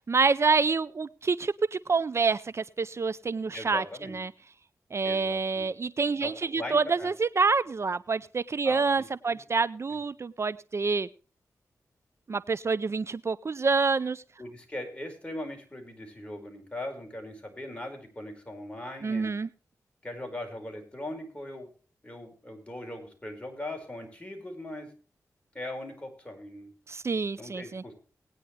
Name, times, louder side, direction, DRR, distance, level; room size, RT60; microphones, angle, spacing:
voice 1, 0.1-3.8 4.1-4.3 4.9-11.1 12.3-14.2 19.0-19.5 26.9-27.8, right 4 dB, 45° right, 17 dB, 0.5 m, -27 dB
voice 2, 3.5-4.2 5.0-5.7 6.2-7.1 8.6-9.4 9.9-10.0 14.4-19.3 20.0-21.7 22.0-24.9 25.5-26.7 27.4-27.9, left 1 dB, 20° left, 3 dB, 5.0 m, -40 dB
19.0 x 9.8 x 3.3 m, 0.39 s
cardioid pair, 70°, 6 cm